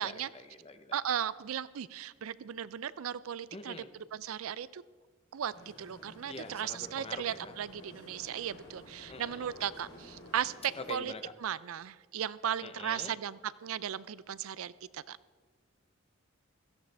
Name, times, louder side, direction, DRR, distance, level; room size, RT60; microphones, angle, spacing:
voice 1, 0.0-1.0 3.5-3.9 6.3-7.6 9.1-9.5 10.8-11.3 12.6-13.1, left 2 dB, 25° left, 9 dB, 0.8 m, -45 dB
voice 2, 0.9-3.8 4.1-4.8 5.3-5.5 5.8-10.5 10.9-11.1 11.4-15.2, right 9 dB, 70° right, 18 dB, 0.4 m, -36 dB
sound 1, 5.5-10.9, left 1 dB, 60° left, 3.8 m, -52 dB
17.0 x 14.0 x 3.4 m, 1.5 s
head